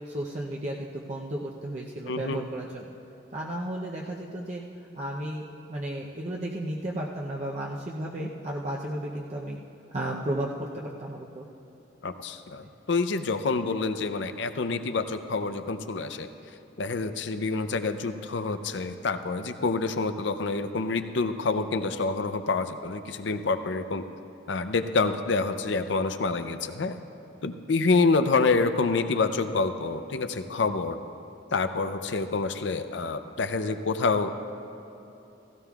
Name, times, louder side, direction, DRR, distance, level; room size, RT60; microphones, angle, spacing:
voice 1, 0.1-2.9 3.3-9.6 9.9-11.5, right 1 dB, 35° right, -3 dB, 0.7 m, -34 dB
voice 2, 2.1-2.4 12.0-16.3 16.8-24.0 24.5-26.9 27.4-31.0 31.5-34.5, left 4 dB, 70° left, 9 dB, 0.6 m, -27 dB
16.5 x 16.0 x 2.4 m, 2.9 s
head